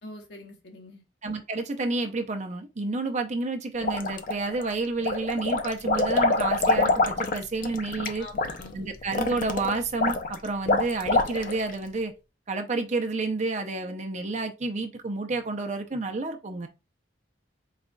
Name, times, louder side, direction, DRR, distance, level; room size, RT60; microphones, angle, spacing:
voice 1, 0.0-1.0 8.2-8.9, left 2 dB, 60° left, 1.1 m, -44 dB
voice 2, 1.2-8.3 8.7-12.1 12.5-16.7, right 3 dB, 40° right, 0.6 m, -30 dB
sound 1, 3.8-4.6 5.0-11.7, left 2 dB, 45° left, 0.5 m, -25 dB
4.1 x 3.8 x 2.2 m
head